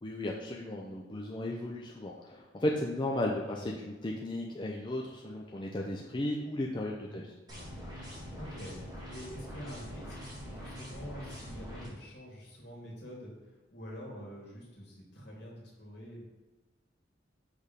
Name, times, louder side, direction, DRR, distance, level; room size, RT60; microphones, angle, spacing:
voice 1, 0.0-7.3, left 1 dB, 25° left, -1 dB, 0.5 m, -35 dB
voice 2, 3.5-3.8 7.1-7.3 8.3-8.7 9.0-13.3 13.7-16.2, equal, 65° left, -3 dB, 2.2 m, -46 dB
sound 1, 7.5-11.9, equal, 20° right, 1.9 m, -44 dB
6.4 x 3.5 x 5.1 m, 1.2 s
head